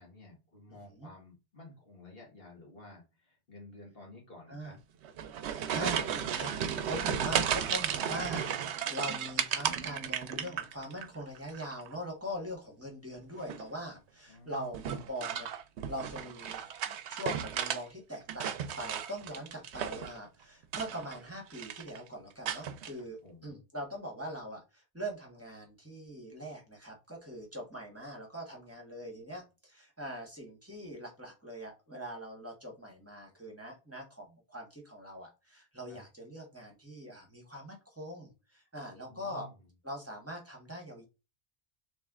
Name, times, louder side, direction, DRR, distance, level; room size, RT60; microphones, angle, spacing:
voice 1, 0.0-4.8 14.3-14.7 23.2-23.6 35.9-36.0 39.1-39.5, left 2 dB, 55° left, -1 dB, 1.9 m, -52 dB
voice 2, 0.7-1.1 4.5-4.7 5.4-15.5 15.9-39.5 39.8-41.0, equal, 15° right, 0 dB, 1.3 m, -42 dB
sound 1, 5.0-11.1 11.4-11.9 13.3-13.7 14.7-17.8 18.1-20.2 20.6-21.2 21.5-22.0 22.5-22.9, right 8 dB, 75° right, 0.8 m, -34 dB
3.4 x 3.2 x 3.6 m, 0.28 s
omnidirectional pair, 1.2 m